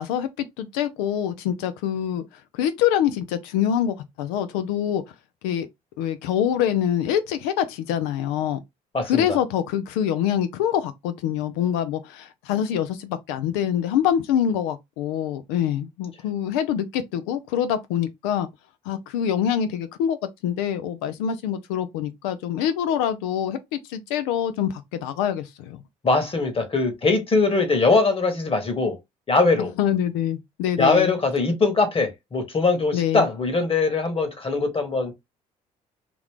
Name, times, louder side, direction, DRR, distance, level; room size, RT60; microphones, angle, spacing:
voice 1, 0.0-2.2 2.5-5.0 5.4-5.7 6.0-8.6 9.0-18.5 18.9-20.2 20.4-25.8 29.8-31.1 32.9-33.3, left 9 dB, 90° left, 0.5 m, -25 dB
voice 2, 8.9-9.4 26.0-29.0 29.3-29.7 30.8-35.1, left 3 dB, 35° left, 1.3 m, -21 dB
3.0 x 2.5 x 3.4 m
supercardioid pair, 65°, 17 cm